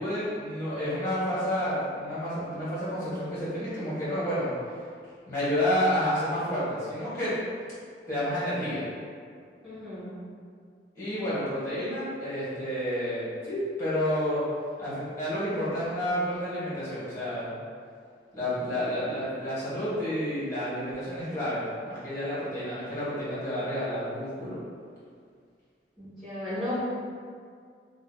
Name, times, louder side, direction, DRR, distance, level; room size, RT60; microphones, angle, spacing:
voice 1, 0.0-4.5 5.3-7.3 8.1-8.8 11.0-14.4 14.8-17.5 18.3-24.6, equal, 15° left, -11 dB, 1.0 m, -30 dB
voice 2, 9.6-10.2 26.0-26.8, left 1 dB, ahead, -13 dB, 1.3 m, -34 dB
2.6 x 2.1 x 3.6 m, 2.1 s
head